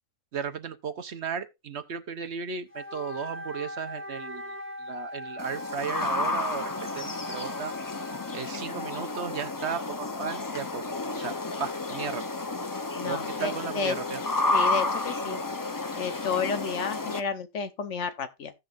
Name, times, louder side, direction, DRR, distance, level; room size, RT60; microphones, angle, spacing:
voice 1, 0.3-7.7 8.3-10.9 11.1-11.3 11.6-12.2 13.0-14.2, right 7 dB, 60° right, 1.0 m, -35 dB
Wind instrument woodwind instrument, 2.7-8.6, left 1 dB, 10° right, 0.7 m, -40 dB
sound 1, 5.4-17.2, left 2 dB, 30° left, 0.3 m, -31 dB
voice 2, 13.0-13.9 14.5-15.4 15.9-18.5, left 6 dB, 65° left, 1.2 m, -31 dB
16.0 x 6.2 x 2.4 m
omnidirectional pair, 1.4 m